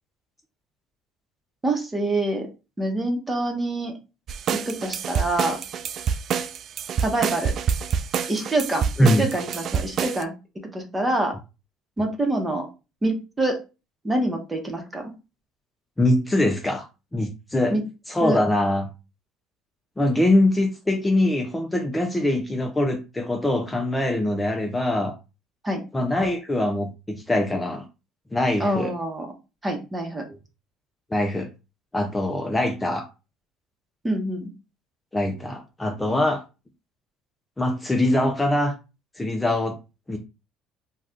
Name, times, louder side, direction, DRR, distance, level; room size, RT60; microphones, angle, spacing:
voice 1, 1.6-2.5 2.8-4.0 4.5-5.6 7.0-7.5 8.3-8.8 9.2-10.3 10.7-11.3 12.0-12.7 13.0-13.6 14.0-15.1 17.7-17.8 18.2-18.4 25.6-25.8 28.6-29.3 29.6-30.2 34.0-34.5, right 2 dB, 15° right, 3 dB, 1.0 m, -25 dB
sound 1, 4.3-10.2, right 7 dB, 55° right, 0.3 m, -27 dB
voice 2, 16.0-16.8 17.1-17.8 18.1-18.9 20.0-25.1 25.9-27.8 28.3-28.9 30.3-30.4 31.1-31.5 31.9-33.1 35.1-36.4 37.6-38.7 39.2-39.8 40.1-40.2, left 1 dB, 15° left, 3 dB, 0.5 m, -23 dB
2.6 x 2.3 x 3.6 m, 0.29 s
supercardioid pair, 80°, 0 cm